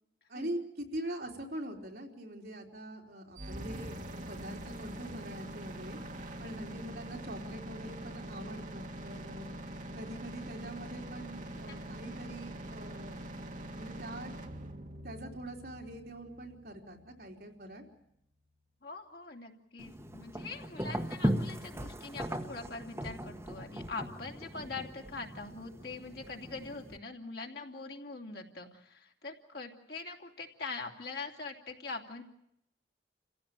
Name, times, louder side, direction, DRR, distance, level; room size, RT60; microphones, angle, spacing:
voice 1, 0.3-6.0 6.4-9.5 9.9-13.5 13.7-14.3 15.0-17.9, right 1 dB, 60° right, 0 dB, 3.8 m, -43 dB
sound 1, 3.4-17.3, right 1 dB, 45° right, 1.7 m, -44 dB
voice 2, 11.7-12.0 18.8-32.2, left 3 dB, 60° left, 1 dB, 3.0 m, -43 dB
sound 2, 19.8-27.0, equal, 15° right, 1.4 m, -38 dB
28.5 x 16.0 x 9.1 m, 0.78 s
head